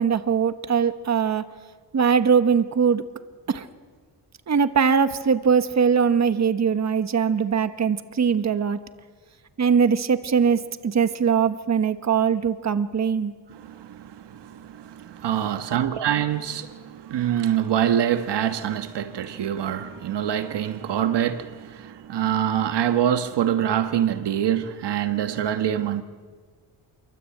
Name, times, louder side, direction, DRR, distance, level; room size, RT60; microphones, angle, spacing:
voice 1, 0.0-1.4 1.9-3.0 3.5-3.7 4.5-8.8 9.6-13.3, right 6 dB, 40° right, 1.4 m, -21 dB
voice 2, 13.5-26.0, right 10 dB, 70° right, 1.5 m, -25 dB
29.0 x 23.5 x 8.7 m
cardioid pair, 95°, 43 cm